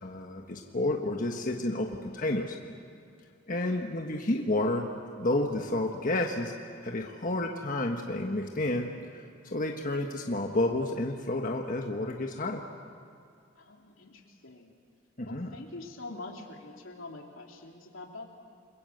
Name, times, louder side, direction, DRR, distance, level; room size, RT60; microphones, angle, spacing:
voice 1, 0.0-2.6 3.5-4.9 5.2-6.5 6.8-9.2 9.5-12.6 15.2-15.5, left 2 dB, 45° left, 2 dB, 1.4 m, -30 dB
voice 2, 3.5-3.8 13.5-14.7 15.2-18.3, left 2 dB, 85° left, 1 dB, 3.1 m, -45 dB
29.0 x 21.0 x 7.9 m, 2.3 s
head